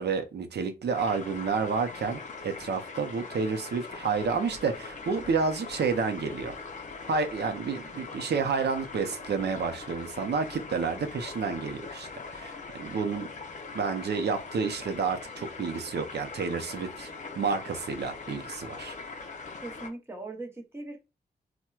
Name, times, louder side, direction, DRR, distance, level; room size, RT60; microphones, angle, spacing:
voice 1, 0.0-6.5 7.1-13.3 13.7-17.1 17.4-18.9, right 5 dB, 90° right, 0.5 m, -30 dB
sound 1, 0.9-19.9, left 4 dB, 45° left, 0.5 m, -42 dB
voice 2, 19.6-21.1, right 2 dB, 15° right, 0.7 m, -40 dB
4.3 x 2.1 x 2.3 m
wide cardioid pair, 150°, 17 cm